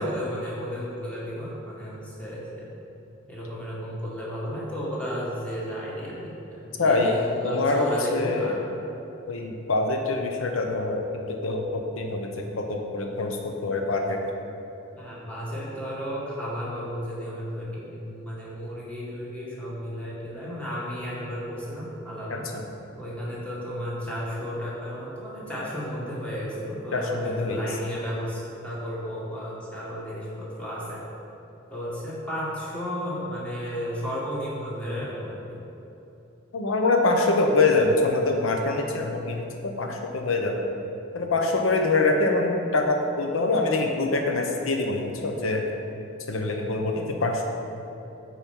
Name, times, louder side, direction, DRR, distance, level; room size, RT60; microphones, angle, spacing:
voice 1, 0.0-2.7 3.3-8.6 14.9-22.5 23.0-31.0 31.7-35.6, equal, 5° left, -8 dB, 1.8 m, -33 dB
voice 2, 6.8-7.2 7.4-8.6 9.3-12.3 12.6-14.2 22.3-22.4 26.9-27.6 36.5-39.4 39.8-40.7 41.1-45.6 46.3-47.4, left 2 dB, 85° left, 2 dB, 0.8 m, -24 dB
9.2 x 4.3 x 5.3 m, 2.9 s
head